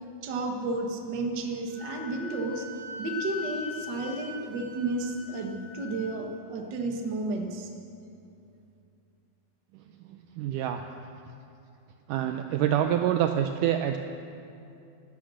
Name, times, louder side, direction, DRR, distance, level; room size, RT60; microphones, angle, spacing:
voice 1, 0.2-2.7 3.0-7.7, right 2 dB, 55° right, 2 dB, 1.3 m, -32 dB
Wind instrument woodwind instrument, 1.7-6.2, left 4 dB, 55° left, 0.9 m, -41 dB
voice 2, 10.4-10.8 12.1-14.0, right 10 dB, 85° right, 6 dB, 1.8 m, -26 dB
17.0 x 12.5 x 6.4 m, 2.7 s
omnidirectional pair, 4.3 m